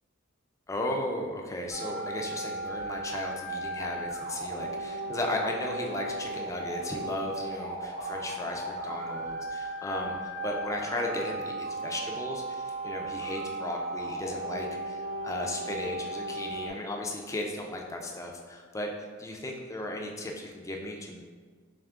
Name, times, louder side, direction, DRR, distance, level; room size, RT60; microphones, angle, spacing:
voice 1, 0.7-18.9 19.2-21.2, left 1 dB, 15° left, 1 dB, 0.4 m, -35 dB
sound 1, 1.7-16.7, right 2 dB, 75° right, 1.3 m, -36 dB
3.5 x 3.2 x 3.5 m, 1.5 s
head